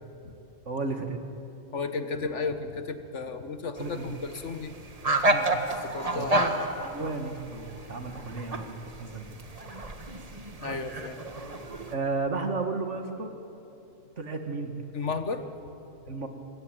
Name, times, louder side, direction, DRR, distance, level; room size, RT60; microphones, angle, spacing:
voice 1, 0.7-1.3 3.8-4.1 5.2-5.5 6.1-9.4 11.9-13.3 14.2-14.7 16.1-16.3, right 3 dB, 65° right, 6 dB, 2.3 m, -33 dB
voice 2, 1.7-4.7 5.8-6.6 10.6-11.2 14.9-15.4, left 4 dB, 65° left, 9 dB, 1.7 m, -33 dB
sound 1, 3.8-11.9, right 1 dB, 30° right, 1.5 m, -31 dB
26.0 x 22.0 x 9.0 m, 2.9 s
omnidirectional pair, 1.3 m